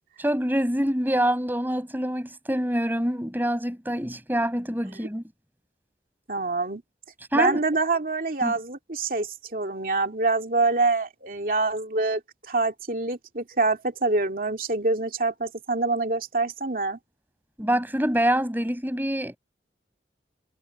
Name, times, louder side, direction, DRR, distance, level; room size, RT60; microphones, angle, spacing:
voice 1, 0.2-5.2 7.3-7.6 8.4-8.5 17.6-19.4, equal, 10° right, 7.0 m, -25 dB
voice 2, 6.3-6.8 7.3-12.2 12.5-17.0, right 3 dB, 50° right, 2.5 m, -25 dB
head